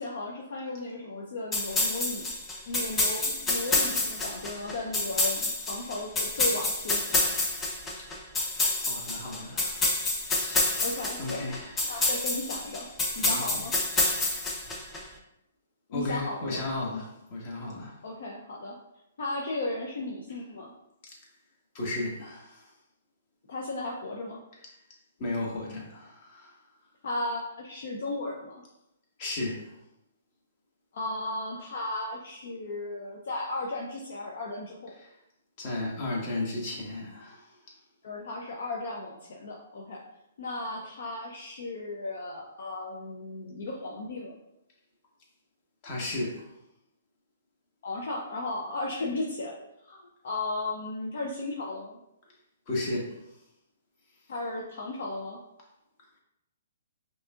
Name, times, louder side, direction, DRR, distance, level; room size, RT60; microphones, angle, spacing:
voice 1, 0.0-2.3 2.7-7.3 10.8-11.5 11.8-12.9 13.1-13.7 15.9-16.6 18.0-18.8 19.2-20.7 23.5-24.4 27.0-28.6 30.9-34.9 38.0-40.0 40.4-44.4 47.8-49.6 49.8-52.0 54.3-55.4, left 2 dB, 65° left, -1 dB, 0.6 m, -35 dB
sound 1, 1.5-15.0, left 2 dB, 15° left, 0.6 m, -28 dB
voice 2, 8.8-9.9 10.2-10.8 11.2-11.9 13.2-13.6 14.0-14.7 15.9-18.0 21.1-21.2 21.7-22.7 25.2-26.6 29.2-29.7 35.0-35.1 35.6-37.5 45.8-46.5 52.7-53.3, left 2 dB, 40° left, -2 dB, 1.3 m, -35 dB
5.2 x 2.7 x 2.4 m, 0.86 s
hypercardioid pair, 140°, 0 cm